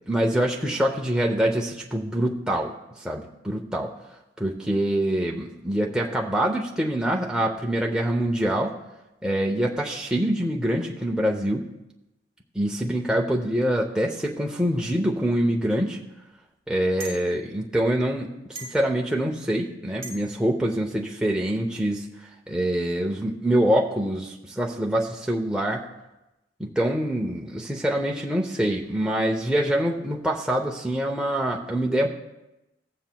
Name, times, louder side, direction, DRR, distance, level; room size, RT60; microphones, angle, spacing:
voice 1, 0.1-3.9 4.4-8.7 9.2-11.7 12.5-16.0 16.7-22.0 22.5-25.8 26.6-32.1, right 1 dB, 5° right, -1 dB, 0.6 m, -25 dB
sound 1, 17.0-17.2 18.5-18.9 20.0-20.3, right 1 dB, 35° right, 1.6 m, -38 dB
18.0 x 7.6 x 2.3 m, 0.98 s
head